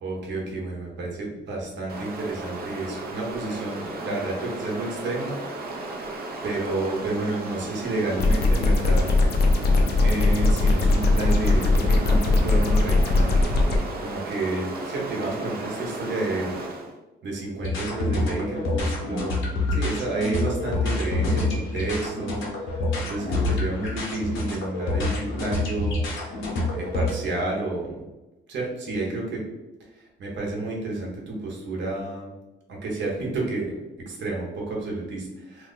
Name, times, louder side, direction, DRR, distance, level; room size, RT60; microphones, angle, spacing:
voice 1, 0.0-5.4 6.4-9.1 10.0-13.4 14.0-16.6 17.2-19.4 19.7-26.0 26.7-28.0 28.5-29.4 30.2-32.3 32.7-33.7 34.1-35.7, right 2 dB, 65° right, -2 dB, 1.1 m, -30 dB
Stream, 1.9-17.0, right 2 dB, 50° right, 0.7 m, -35 dB
sound 1, 8.2-13.8, left 2 dB, 55° left, 0.5 m, -20 dB
sound 2, 17.6-27.1, left 2 dB, 85° left, 1.0 m, -27 dB
2.8 x 2.2 x 3.9 m, 1.0 s
cardioid pair, 90°, 20 cm